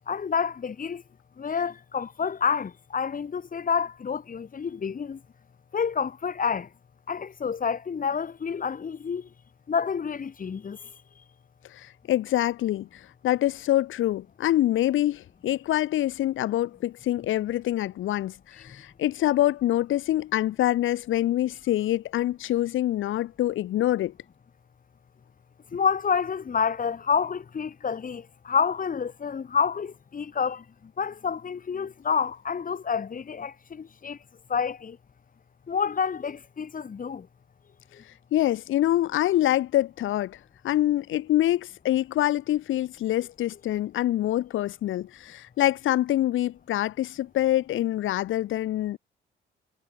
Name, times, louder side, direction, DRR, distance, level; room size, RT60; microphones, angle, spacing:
voice 1, 0.1-1.0 1.4-5.2 5.7-6.7 7.1-9.3 9.7-10.8 25.7-30.6 31.0-34.2 34.5-35.0 35.7-37.3, left 6 dB, 45° left, 6.1 m, -28 dB
voice 2, 11.7-24.1 38.1-40.4 40.6-49.0, left 13 dB, 80° left, 4.0 m, -25 dB
cardioid pair, 90°, 20 cm